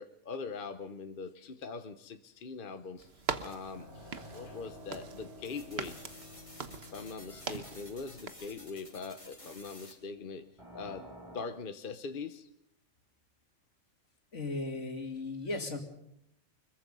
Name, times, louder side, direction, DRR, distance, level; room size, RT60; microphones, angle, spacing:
voice 1, 0.0-3.1 3.4-6.0 6.9-12.5 15.5-15.6, left 4 dB, 50° left, 9 dB, 1.1 m, -42 dB
sound 1, 3.0-8.3, right 5 dB, 60° right, 1.4 m, -42 dB
sound 2, 3.7-11.4, left 1 dB, 25° right, 6.6 m, -52 dB
sound 3, 5.4-9.9, left 1 dB, 25° left, 3.4 m, -53 dB
voice 2, 14.3-15.8, left 2 dB, 75° left, 4 dB, 3.0 m, -36 dB
25.0 x 22.0 x 5.4 m, 0.78 s
omnidirectional pair, 1.2 m